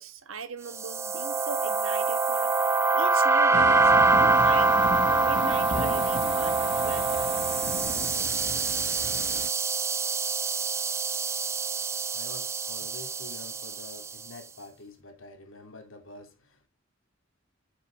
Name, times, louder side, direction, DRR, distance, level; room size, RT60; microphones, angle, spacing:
voice 1, 0.0-2.6 2.9-3.9 4.3-7.4 10.7-10.8, right 4 dB, 85° right, 1.4 m, -40 dB
sound 1, 0.7-14.1, right 3 dB, 15° right, 0.4 m, -25 dB
sound 2, 3.5-9.5, left 2 dB, 60° left, 1.1 m, -35 dB
voice 2, 11.9-16.7, left 2 dB, 75° left, 2.5 m, -47 dB
8.4 x 6.4 x 3.9 m
head